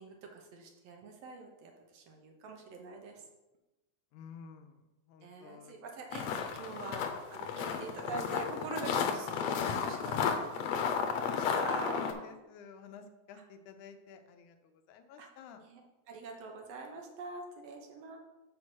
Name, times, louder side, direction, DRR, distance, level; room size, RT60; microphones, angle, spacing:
voice 1, 0.0-3.1 5.2-7.0 7.3-12.0 15.2-15.3 15.6-15.8 16.1-18.2, right 3 dB, 65° right, 2 dB, 1.9 m, -44 dB
voice 2, 4.1-4.8 5.1-5.8 6.7-6.8 9.0-10.6 11.5-15.6, left 6 dB, 90° left, 7 dB, 2.2 m, -51 dB
sound 1, 6.1-12.1, left 7 dB, 75° left, 1.8 m, -33 dB
5.9 x 5.4 x 6.2 m, 1.0 s
omnidirectional pair, 3.3 m